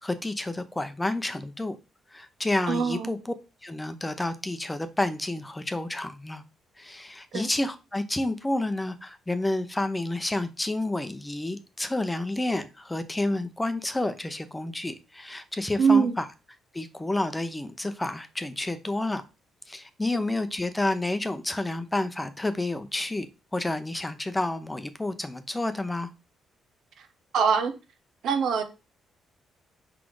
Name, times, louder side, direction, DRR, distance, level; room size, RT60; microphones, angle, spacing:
voice 1, 0.0-1.8 2.1-3.3 3.6-6.4 6.8-16.3 16.7-19.2 19.7-23.3 23.5-26.1, left 2 dB, 10° left, 0.7 m, -30 dB
voice 2, 2.7-3.1 7.3-7.5 15.8-16.2 27.3-27.7 28.2-28.6, right 6 dB, 70° right, 1.0 m, -22 dB
4.9 x 4.1 x 4.8 m
cardioid pair, 90°, 0 cm